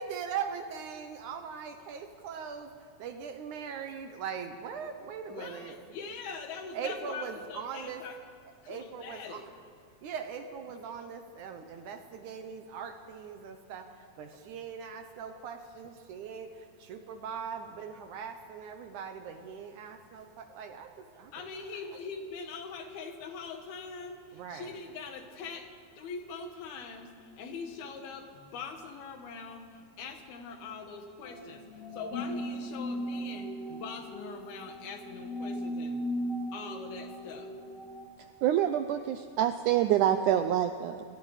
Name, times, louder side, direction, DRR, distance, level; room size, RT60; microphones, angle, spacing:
voice 1, 0.0-2.7 3.0-5.8 6.7-8.0 8.7-9.4 10.0-21.5 24.3-24.8, right 6 dB, 70° right, 7 dB, 2.1 m, -40 dB
voice 2, 5.3-8.2 8.6-9.5 21.3-36.1 36.5-37.6, left 5 dB, 85° left, 5 dB, 3.6 m, -43 dB
sound 1, 31.2-38.1, equal, 65° left, 5.2 m, -37 dB
voice 3, 38.4-41.0, right 11 dB, 85° right, 9 dB, 1.8 m, -26 dB
28.0 x 20.5 x 4.9 m, 2.2 s
omnidirectional pair, 4.3 m